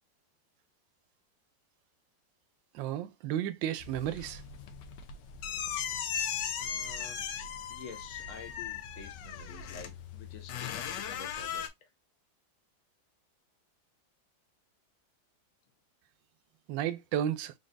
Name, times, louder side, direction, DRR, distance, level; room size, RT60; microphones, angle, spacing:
voice 1, 2.7-4.4 16.7-17.5, right 10 dB, 80° right, 1.3 m, -33 dB
sound 1, 3.8-11.7, left 8 dB, 75° left, 1.3 m, -38 dB
voice 2, 6.6-7.3 7.7-11.9, left 6 dB, 50° left, 1.1 m, -49 dB
3.9 x 3.6 x 2.5 m
omnidirectional pair, 2.0 m